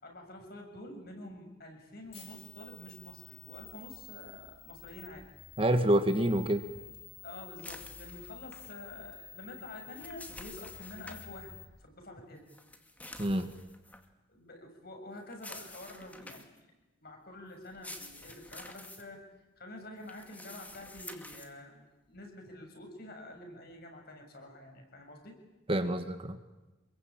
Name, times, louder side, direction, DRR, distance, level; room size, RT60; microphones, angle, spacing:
voice 1, 0.0-5.2 7.2-11.5 11.8-12.5 14.3-16.5 17.0-19.2 19.6-25.4, left 1 dB, 50° left, 3 dB, 7.4 m, -48 dB
sound 1, 2.1-11.6, left 7 dB, 30° left, 6.7 m, -50 dB
voice 2, 5.6-6.6 13.2-13.5 25.7-26.4, right 1 dB, 30° right, 8 dB, 1.5 m, -27 dB
sound 2, 7.6-8.7 9.7-11.3 12.5-14.1 15.3-16.6 17.6-19.0 20.0-21.5, left 2 dB, 10° left, 2.3 m, -49 dB
28.0 x 22.5 x 8.8 m, 1.1 s
head